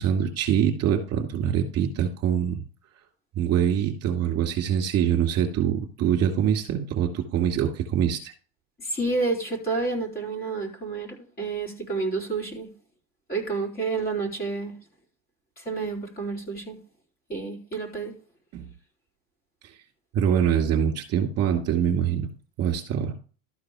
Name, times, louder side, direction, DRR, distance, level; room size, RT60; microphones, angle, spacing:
voice 1, 0.0-2.6 3.4-8.3 18.5-18.7 20.1-22.3 22.6-23.1, right 9 dB, 40° right, 2.6 m, -24 dB
voice 2, 8.8-12.7 13.3-14.7 15.6-16.8 17.3-18.1, right 3 dB, 25° left, 4.0 m, -29 dB
13.0 x 4.7 x 4.9 m
supercardioid pair, 110°, 38 cm